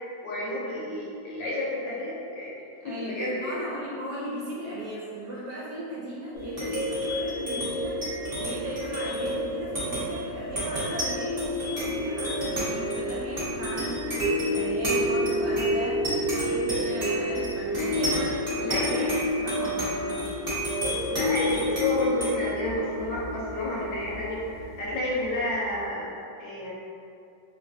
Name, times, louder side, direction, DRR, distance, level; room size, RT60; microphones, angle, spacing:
voice 1, 0.2-2.5 2.8-3.5 18.7-19.0 21.1-26.1 26.4-26.7, left 1 dB, 70° left, -6 dB, 1.2 m, -30 dB
voice 2, 2.8-20.3, right 1 dB, 70° right, -6 dB, 1.1 m, -36 dB
sound 1, 6.3-25.2, equal, 35° right, 0.9 m, -29 dB
3.1 x 2.5 x 2.5 m, 2.5 s
omnidirectional pair, 2.1 m